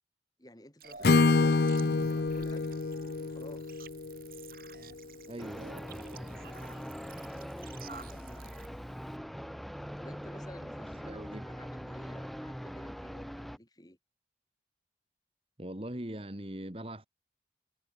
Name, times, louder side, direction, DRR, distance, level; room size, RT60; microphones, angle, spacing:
voice 1, 0.4-3.9 7.1-8.7 10.0-14.0, left 1 dB, 20° left, 3.1 m, -53 dB
sound 1, 0.8-8.7, right 4 dB, 55° right, 4.9 m, -51 dB
Acoustic guitar / Strum, 1.0-5.0, left 3 dB, 65° left, 0.6 m, -27 dB
voice 2, 5.3-5.7 10.4-11.5 15.6-17.1, right 1 dB, 30° right, 1.9 m, -42 dB
sound 2, 5.4-13.6, equal, ahead, 2.2 m, -42 dB
head